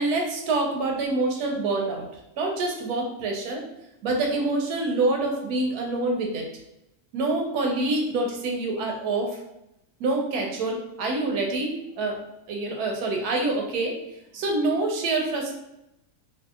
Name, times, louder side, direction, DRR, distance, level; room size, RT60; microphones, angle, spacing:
voice 1, 0.0-2.1 2.4-3.6 4.0-6.5 7.1-9.4 10.0-12.2 12.5-14.0 14.3-15.5, right 2 dB, 90° right, 2 dB, 1.1 m, -26 dB
2.6 x 2.6 x 2.3 m, 0.86 s
omnidirectional pair, 1.6 m